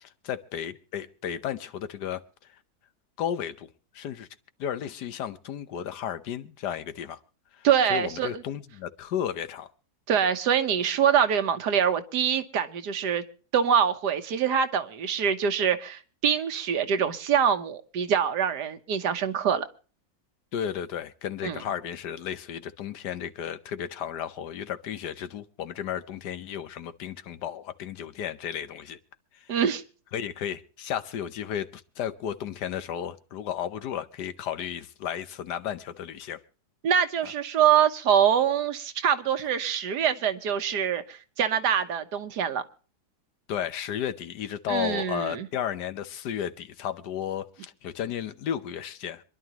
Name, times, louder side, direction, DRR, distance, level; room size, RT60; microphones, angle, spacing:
voice 1, 0.2-2.2 3.2-4.3 4.6-7.2 7.5-9.7 20.5-29.0 29.4-29.6 30.1-36.4 37.2-37.3 43.5-49.2, left 9 dB, 75° left, 1.5 m, -33 dB
voice 2, 7.6-8.4 10.1-13.2 13.5-19.7 21.4-21.6 29.5-29.8 36.8-42.6 44.7-45.5, right 8 dB, 75° right, 1.6 m, -24 dB
26.0 x 11.0 x 3.0 m
omnidirectional pair, 1.8 m